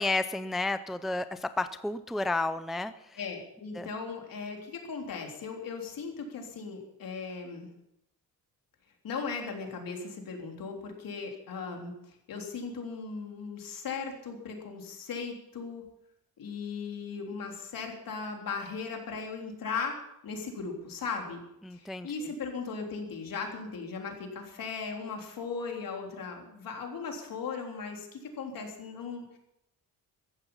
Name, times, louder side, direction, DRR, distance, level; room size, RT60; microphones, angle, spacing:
voice 1, 0.0-3.2 3.7-3.9 21.6-22.3, left 2 dB, ahead, 12 dB, 0.5 m, -32 dB
voice 2, 3.2-7.7 9.0-15.8 16.4-21.4 21.7-29.4, left 5 dB, 65° left, 2 dB, 3.7 m, -38 dB
15.0 x 14.5 x 5.6 m, 0.80 s
wide cardioid pair, 145°, 36 cm